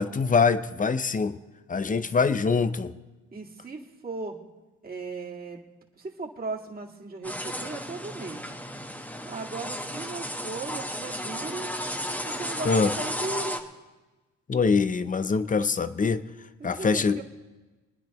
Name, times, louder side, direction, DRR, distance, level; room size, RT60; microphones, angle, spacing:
voice 1, 0.0-1.4 1.7-2.9 12.6-12.9 14.5-16.2 16.6-17.2, left 5 dB, 25° left, 13 dB, 0.7 m, -24 dB
voice 2, 3.3-4.4 4.8-5.6 6.0-8.6 9.2-11.7 12.2-13.6 16.6-17.2, right 3 dB, 30° right, -2 dB, 2.2 m, -37 dB
sound 1, 7.2-13.6, equal, 5° left, 1.2 m, -34 dB
29.5 x 9.9 x 3.1 m, 1.2 s
cardioid pair, 90°, 30 cm